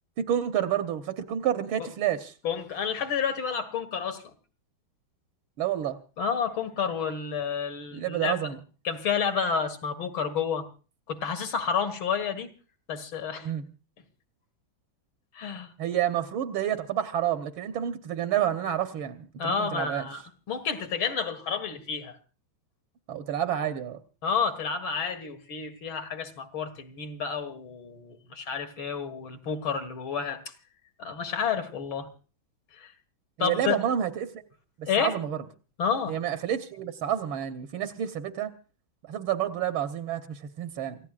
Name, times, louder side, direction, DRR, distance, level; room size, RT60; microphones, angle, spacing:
voice 1, 0.2-2.3 5.6-6.0 7.9-8.6 13.4-13.7 15.8-20.0 23.1-24.0 33.4-34.3 34.8-35.4 36.1-38.5 39.1-41.0, right 10 dB, 80° right, 8 dB, 1.9 m, -29 dB
voice 2, 2.4-4.3 6.2-8.5 8.8-10.7 11.1-12.5 12.9-13.5 15.3-15.7 19.4-20.2 20.5-22.2 24.2-30.4 31.0-32.1 32.8-32.9 33.4-33.8 34.9-35.1 35.8-36.2, left 6 dB, 75° left, 7 dB, 2.7 m, -30 dB
28.0 x 15.5 x 2.5 m, 0.36 s
omnidirectional pair, 2.2 m